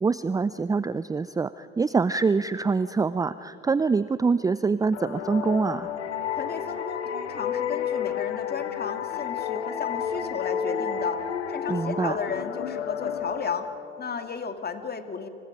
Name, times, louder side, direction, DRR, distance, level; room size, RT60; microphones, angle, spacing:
voice 1, 0.0-5.9 11.7-12.2, right 4 dB, 10° right, 15 dB, 0.5 m, -25 dB
sound 1, 4.9-14.3, left 8 dB, 75° left, 1.7 m, -31 dB
voice 2, 6.3-13.7 14.0-15.3, left 6 dB, 25° left, 7 dB, 2.4 m, -34 dB
29.5 x 28.0 x 5.2 m, 2.8 s
figure-of-eight pair, 70°, 35 cm